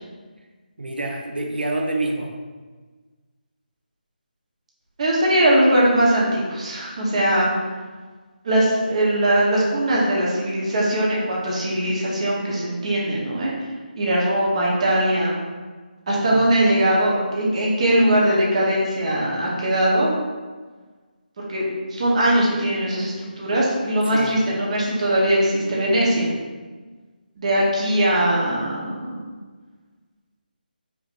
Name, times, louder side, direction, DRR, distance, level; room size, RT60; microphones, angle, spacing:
voice 1, 0.8-2.4 16.3-16.4 24.1-24.4, right 2 dB, 80° right, 2 dB, 0.6 m, -27 dB
voice 2, 5.0-7.5 8.4-13.5 14.0-15.4 16.1-20.1 21.4-26.3 27.4-29.2, right 1 dB, 40° right, -4 dB, 1.1 m, -20 dB
4.9 x 3.2 x 2.6 m, 1.4 s
figure-of-eight pair, 155°, 5 cm